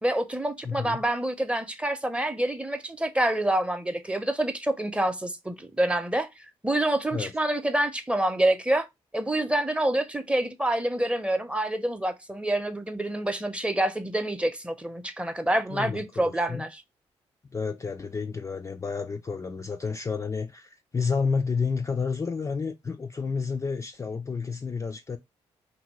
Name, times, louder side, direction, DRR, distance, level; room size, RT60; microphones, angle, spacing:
voice 1, 0.0-6.3 6.6-8.9 9.1-16.8, right 1 dB, 10° right, 0.6 m, -27 dB
voice 2, 0.6-1.0 7.1-7.4 15.7-16.7 17.5-25.2, left 5 dB, 25° left, 0.3 m, -30 dB
2.7 x 2.6 x 3.0 m
supercardioid pair, 55°, 12 cm